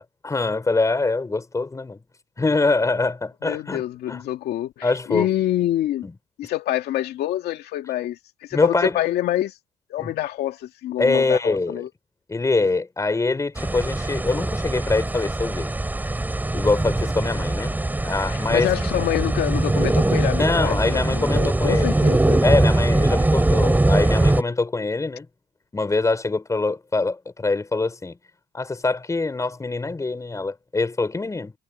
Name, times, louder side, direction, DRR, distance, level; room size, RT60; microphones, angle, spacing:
voice 1, 0.0-2.0 2.4-3.8 4.1-4.2 4.8-5.3 6.0-6.1 8.5-9.0 10.0-10.1 11.0-11.8 12.3-15.7 16.5-17.8 18.0-18.7 20.4-22.0 22.4-25.3 25.7-28.2 28.5-31.5, left 3 dB, 20° left, 4.7 m, -24 dB
voice 2, 3.4-6.1 6.4-8.2 8.5-9.5 9.9-11.9 18.3-22.4, left 13 dB, 75° left, 2.4 m, -26 dB
sound 1, 13.6-24.4, right 2 dB, 10° right, 6.0 m, -21 dB
cardioid pair, 110°, 17 cm